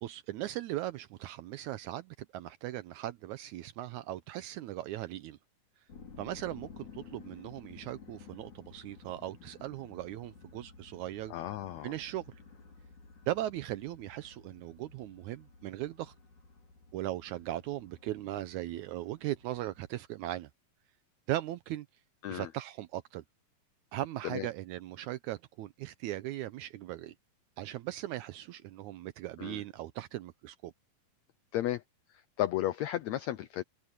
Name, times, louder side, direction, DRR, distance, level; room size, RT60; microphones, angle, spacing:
voice 1, 0.0-5.4 6.2-11.3 11.8-12.3 13.3-16.1 16.9-20.5 21.3-21.9 22.3-23.2 23.9-27.1 27.6-30.7, right 14 dB, 85° right, 1.7 m, -38 dB
sound 1, 5.9-19.9, left 5 dB, 55° left, 6.5 m, -54 dB
voice 2, 11.3-11.9 22.2-22.5 24.2-24.5 29.4-29.6 31.5-31.8 32.1-33.6, left 13 dB, 80° left, 1.6 m, -34 dB
omnidirectional pair, 4.1 m